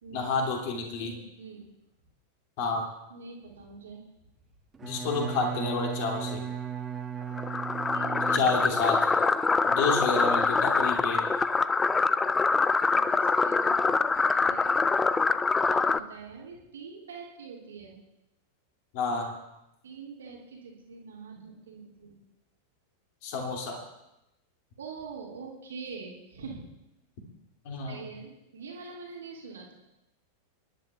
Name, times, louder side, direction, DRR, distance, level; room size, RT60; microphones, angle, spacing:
voice 1, 0.1-1.1 2.6-2.9 4.8-6.4 8.3-9.0 9.7-11.2 18.9-19.3 23.2-23.8 27.6-28.1, left 4 dB, 45° left, 1 dB, 2.6 m, -29 dB
voice 2, 1.0-1.7 3.1-4.1 7.9-8.5 12.9-14.8 15.6-18.0 19.8-22.2 24.8-26.7 27.9-29.7, right 5 dB, 65° right, -1 dB, 2.2 m, -44 dB
Bowed string instrument, 4.7-9.0, right 8 dB, 15° right, 1.4 m, -36 dB
sound 1, 7.4-16.0, left 4 dB, 15° left, 0.4 m, -25 dB
29.5 x 10.5 x 2.4 m, 0.89 s
figure-of-eight pair, 90°, 0 cm